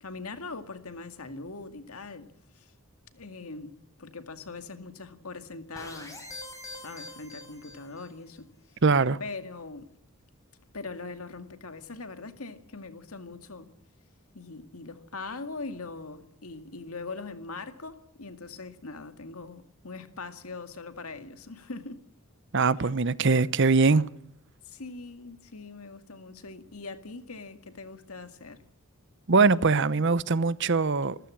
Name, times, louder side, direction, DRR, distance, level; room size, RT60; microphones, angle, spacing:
voice 1, 0.0-2.3 2.5-2.7 3.1-6.2 6.7-8.8 9.2-9.9 10.7-13.7 14.3-22.0 22.8-22.9 24.7-28.6, left 3 dB, 80° left, 2.1 m, -41 dB
sound 1, 5.8-8.2, left 2 dB, 15° left, 6.9 m, -44 dB
voice 2, 8.8-9.2 22.5-24.1 29.3-31.2, right 4 dB, 55° right, 0.8 m, -22 dB
26.5 x 15.0 x 8.6 m
head